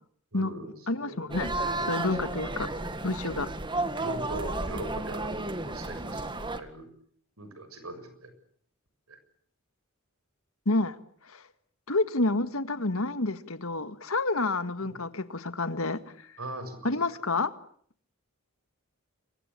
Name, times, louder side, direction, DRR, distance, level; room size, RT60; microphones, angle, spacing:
voice 1, 0.3-2.9 3.9-6.9 7.4-8.3 9.1-9.2 14.8-15.0 16.4-17.0, right 1 dB, 80° right, 7.0 m, -41 dB
voice 2, 0.9-1.5 1.9-2.7 3.0-3.5 10.6-11.0 11.3-11.4 11.9-16.0 16.8-17.5, left 2 dB, 70° left, 1.8 m, -29 dB
sound 1, 1.3-6.6, right 2 dB, 20° right, 1.9 m, -33 dB
27.5 x 24.0 x 8.6 m
head